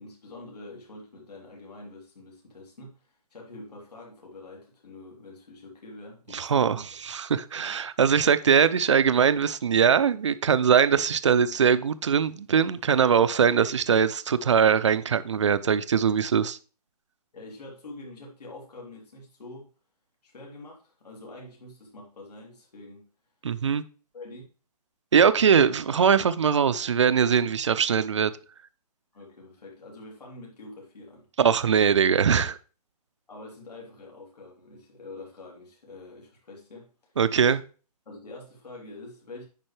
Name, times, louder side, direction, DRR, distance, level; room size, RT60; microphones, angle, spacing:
voice 1, 0.0-6.9 17.3-19.7 20.2-23.1 24.1-24.4 29.1-31.3 33.3-37.1 38.0-39.4, left 2 dB, 80° left, -2 dB, 3.1 m, -45 dB
voice 2, 6.3-16.6 23.4-23.8 25.1-28.3 31.4-32.6 37.2-37.6, right 7 dB, 50° right, 14 dB, 0.5 m, -21 dB
8.9 x 5.3 x 3.3 m, 0.37 s
hypercardioid pair, 170°, 20 cm